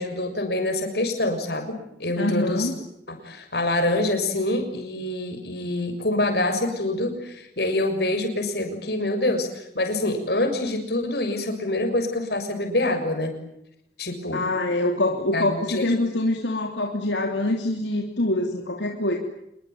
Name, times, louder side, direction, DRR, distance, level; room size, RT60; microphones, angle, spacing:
voice 1, 0.0-2.7 3.1-13.3 14.0-14.4 15.3-15.9, left 1 dB, 60° left, 6 dB, 6.7 m, -26 dB
voice 2, 2.2-2.7 14.3-19.2, left 1 dB, 80° left, 2 dB, 3.2 m, -25 dB
27.5 x 22.5 x 9.3 m, 0.79 s
head